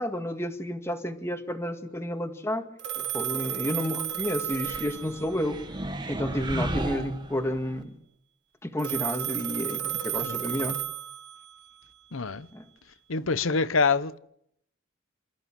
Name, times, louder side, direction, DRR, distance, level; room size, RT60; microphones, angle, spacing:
voice 1, 0.0-2.6 3.0-5.6 6.1-7.9 8.6-10.8 12.5-12.6, equal, 15° left, 1.9 m, -31 dB
Telephone, 2.8-5.7 8.8-11.6, right 10 dB, 60° right, 1.6 m, -33 dB
sound 1, 4.5-7.8, right 1 dB, 20° right, 1.4 m, -35 dB
voice 2, 10.2-10.7 12.1-12.5 13.1-14.2, left 4 dB, 80° left, 0.9 m, -26 dB
27.5 x 14.0 x 7.6 m
head